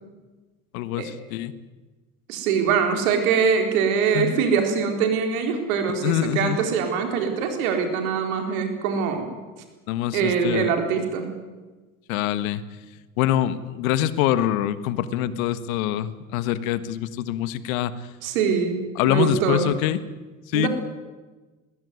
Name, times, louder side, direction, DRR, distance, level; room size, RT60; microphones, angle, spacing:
voice 1, 0.7-1.5 4.1-4.4 6.0-6.6 9.9-10.7 12.1-12.6 13.2-18.1 18.9-20.0 20.5-20.7, left 12 dB, 75° left, 15 dB, 1.5 m, -25 dB
voice 2, 2.3-9.3 10.1-11.2 18.2-19.7 20.5-20.7, right 6 dB, 75° right, 5 dB, 4.3 m, -23 dB
21.0 x 16.5 x 9.6 m, 1.2 s
hypercardioid pair, 75°, 42 cm